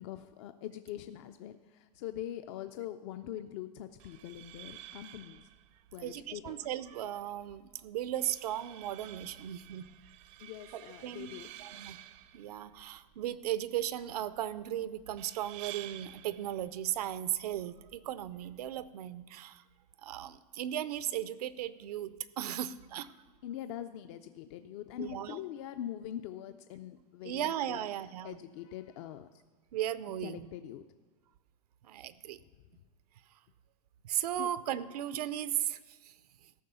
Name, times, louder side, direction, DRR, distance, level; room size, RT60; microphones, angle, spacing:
voice 1, 0.0-5.5 5.9-6.6 10.4-11.5 23.4-27.8 28.2-29.4 30.2-30.9 34.4-34.5, left 11 dB, 50° left, 9 dB, 0.4 m, -43 dB
sound 1, 3.9-18.9, right 14 dB, 35° right, 0.4 m, -52 dB
voice 2, 6.0-9.9 10.7-11.3 11.6-12.0 12.3-19.6 20.0-23.1 25.0-25.4 27.2-28.4 29.7-30.5 31.8-32.4 34.0-36.1, right 11 dB, 85° right, 15 dB, 0.6 m, -36 dB
14.0 x 5.4 x 6.8 m, 1.3 s
supercardioid pair, 155°, 19 cm